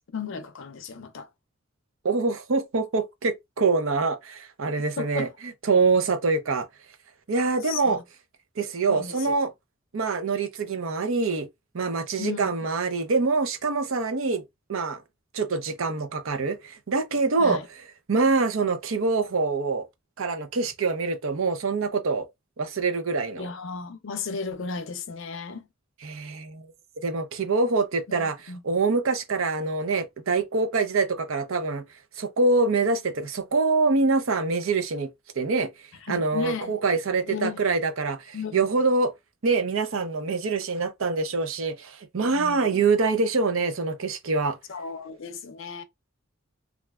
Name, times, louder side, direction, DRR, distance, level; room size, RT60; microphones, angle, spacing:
voice 1, 0.1-1.3 5.0-5.3 7.6-8.0 8.8-9.5 12.2-12.5 17.4-17.7 23.4-25.7 28.1-28.6 36.0-36.7 37.2-37.6 38.3-38.7 42.3-42.8 44.7-45.8, left 5 dB, 65° left, 0.5 m, -35 dB
voice 2, 2.0-6.7 7.3-8.0 8.6-9.5 9.9-11.5 11.7-14.4 14.7-15.0 15.3-17.6 18.1-19.9 20.2-22.3 22.6-23.5 26.0-26.7 27.0-28.4 28.6-31.8 32.2-35.1 35.4-35.7 36.1-39.1 39.4-44.6, right 3 dB, 70° right, 0.6 m, -25 dB
3.2 x 2.4 x 2.3 m
head